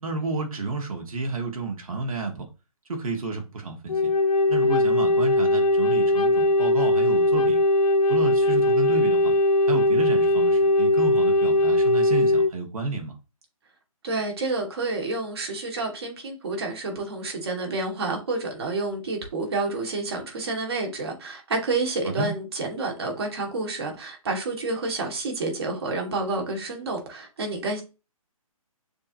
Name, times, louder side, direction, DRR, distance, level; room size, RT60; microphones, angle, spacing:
voice 1, 0.0-2.5 2.9-4.1 4.5-7.6 8.1-9.3 9.7-13.2 22.0-22.3, right 3 dB, 75° right, 1.3 m, -31 dB
Wind instrument woodwind instrument, 3.9-12.5, left 1 dB, 85° left, 0.8 m, -20 dB
voice 2, 14.0-27.8, right 3 dB, 45° right, 1.6 m, -29 dB
6.7 x 2.8 x 2.6 m
hypercardioid pair, 170°, 18 cm